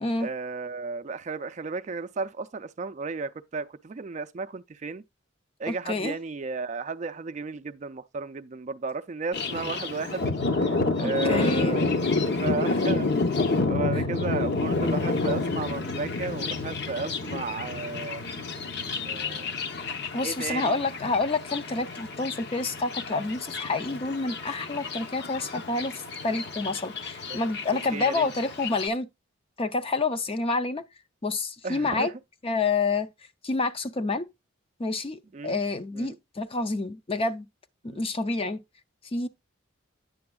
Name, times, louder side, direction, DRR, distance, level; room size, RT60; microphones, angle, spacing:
voice 1, 0.2-5.0 5.6-10.2 10.5-12.0 12.4-13.3 13.7-19.5 20.2-20.8 27.3-27.4 27.9-28.3 31.6-32.1 35.3-35.6 35.9-36.2 37.9-38.0, right 4 dB, 35° right, 0.4 m, -34 dB
voice 2, 5.7-6.2 11.0-11.8 13.9-14.1 20.1-29.1 29.6-30.8 31.2-32.1 32.4-33.1 33.4-34.3 34.8-37.5 37.8-38.6 39.1-39.3, left 3 dB, 25° left, 0.5 m, -28 dB
Thunder, 9.3-28.9, left 3 dB, 55° left, 0.8 m, -29 dB
9.5 x 6.9 x 2.3 m
head